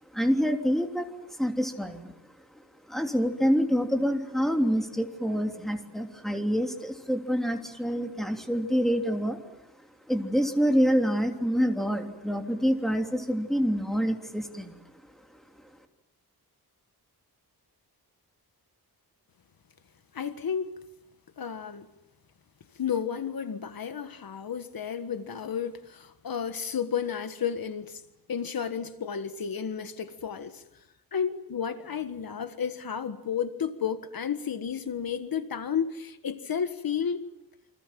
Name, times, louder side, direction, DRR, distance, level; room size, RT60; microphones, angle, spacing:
voice 1, 0.1-2.1 2.9-9.4 10.1-14.8, equal, ahead, 3.2 m, -27 dB
voice 2, 20.1-20.7 21.4-21.9 22.8-28.0 28.3-30.6 31.1-37.2, left 7 dB, 60° left, 1.6 m, -32 dB
28.5 x 26.0 x 7.7 m
wide cardioid pair, 140°, 39 cm